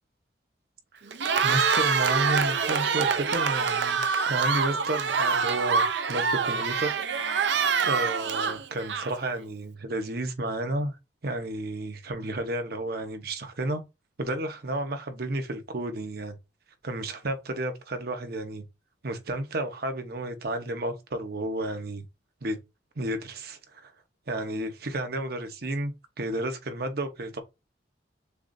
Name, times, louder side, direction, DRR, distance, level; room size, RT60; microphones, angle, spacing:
Cheering, 1.1-9.3, right 5 dB, 75° right, 0.6 m, -25 dB
voice 1, 1.4-7.0 7.8-11.0 11.2-13.8 14.2-16.3 16.8-18.6 19.0-22.0 22.4-22.6 23.0-23.9 24.3-27.4, right 1 dB, 60° right, 0.9 m, -32 dB
6.8 x 2.5 x 2.6 m
head